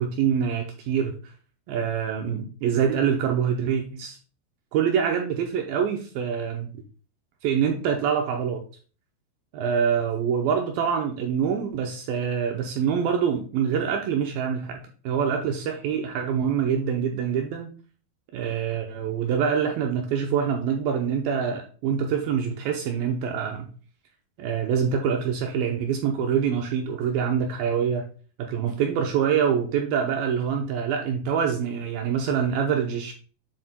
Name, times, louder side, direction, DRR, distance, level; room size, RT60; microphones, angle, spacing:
voice 1, 0.0-1.3 1.7-4.2 4.7-6.7 7.4-8.6 9.5-17.7 18.3-23.7 24.4-28.1 28.4-33.1, right 7 dB, 80° right, 2.1 m, -25 dB
8.7 x 3.6 x 4.3 m
omnidirectional pair, 4.9 m